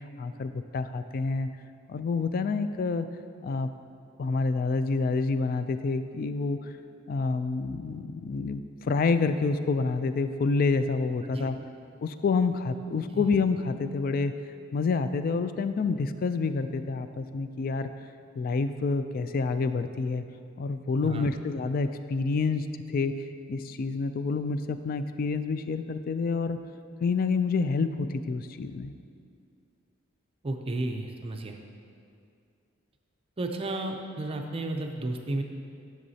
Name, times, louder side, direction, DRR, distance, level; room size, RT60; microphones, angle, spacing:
voice 1, 0.2-1.5 1.9-3.1 3.4-3.7 4.2-6.6 7.1-8.6 8.9-11.5 12.0-14.3 14.7-17.9 18.4-20.2 20.6-23.2 23.5-26.6 27.0-28.9, left 4 dB, 45° left, 11 dB, 0.3 m, -28 dB
voice 2, 21.0-21.4 30.4-31.6 33.4-35.4, right 2 dB, 30° right, 3 dB, 0.5 m, -32 dB
10.5 x 6.4 x 2.8 m, 2.3 s
head